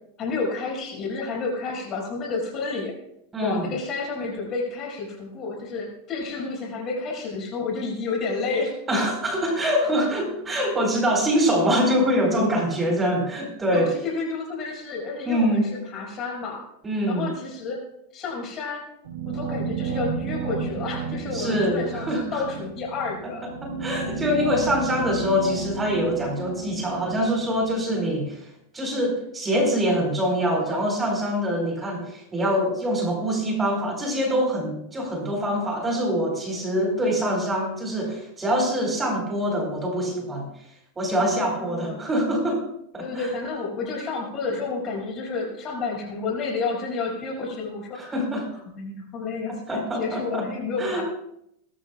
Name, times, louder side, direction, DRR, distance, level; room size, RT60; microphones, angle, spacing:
voice 1, 0.2-3.0 3.4-8.7 13.7-16.7 17.1-17.8 18.1-18.8 19.3-23.5 41.6-42.0 43.0-48.0 48.7-51.0, left 4 dB, 40° left, -1 dB, 5.9 m, -30 dB
voice 2, 3.3-3.7 8.9-13.9 15.2-15.7 16.8-17.3 21.3-22.4 23.6-28.4 28.7-40.5 41.0-42.6 42.9-43.3 47.9-48.5 49.5-50.4 50.8-51.0, equal, 20° right, 1 dB, 4.5 m, -24 dB
sound 1, 19.0-28.0, right 4 dB, 85° right, 3.1 m, -32 dB
21.0 x 13.5 x 2.4 m, 0.78 s
hypercardioid pair, 110°, 0 cm